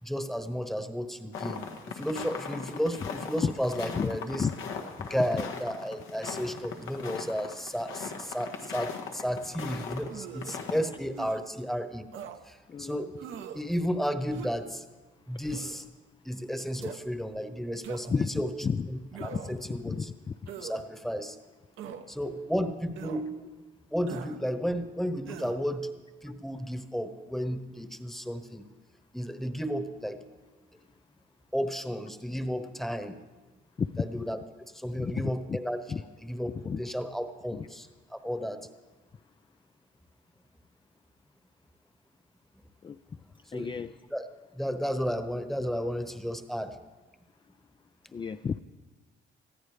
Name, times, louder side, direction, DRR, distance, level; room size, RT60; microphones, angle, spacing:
voice 1, 0.0-4.5 5.1-12.1 12.4-13.1 13.5-14.8 15.3-15.9 16.2-18.5 18.9-20.1 20.6-21.4 22.1-23.5 23.9-25.9 26.2-28.6 29.1-30.2 31.5-33.2 34.0-36.5 36.8-37.9 38.1-38.6 43.5-43.7 44.1-44.3 44.5-46.8, equal, ahead, 8 dB, 1.0 m, -33 dB
sound 1, 1.3-10.1 10.3-10.8, left 6 dB, 85° left, 1.5 m, -39 dB
voice 2, 3.9-4.6 5.0-5.1 12.7-13.1 15.3-15.4 18.1-18.3 18.6-18.9 19.2-19.4 19.8-20.5 33.8-34.2 35.0-35.6 35.9-36.0 36.6-36.8 37.5-37.7 42.8-43.0 43.5-43.9 48.1-48.6, left 6 dB, 25° left, 10 dB, 0.3 m, -32 dB
sound 2, 10.1-10.6 11.1-11.4 12.1-12.4 13.2-13.6 14.3-14.7 15.4-15.8 16.8-17.0 17.8-18.2 19.1-19.6 20.5-20.8 21.8-22.0 23.0-23.2 24.1-24.4 25.3-25.6, right 8 dB, 80° right, 1.0 m, -42 dB
20.0 x 14.0 x 3.4 m, 1.2 s
cardioid pair, 90°, 20 cm